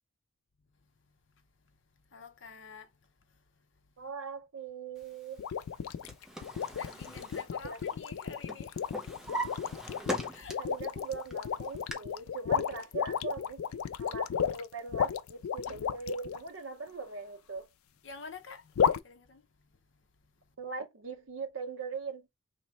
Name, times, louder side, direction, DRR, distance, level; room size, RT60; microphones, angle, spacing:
voice 1, 2.1-2.9 6.8-8.7 10.3-10.6 18.0-19.4, left 4 dB, 60° left, 0.7 m, -48 dB
voice 2, 4.0-5.4 7.6-7.8 10.4-17.7 20.6-22.3, right 4 dB, 65° right, 0.7 m, -41 dB
sound 1, 5.4-16.4 18.8-19.0, left 7 dB, 85° left, 0.4 m, -33 dB
Drawer open or close, 5.7-8.2 8.5-10.8 11.3-11.9, right 1 dB, ahead, 0.6 m, -40 dB
3.2 x 3.0 x 4.3 m
head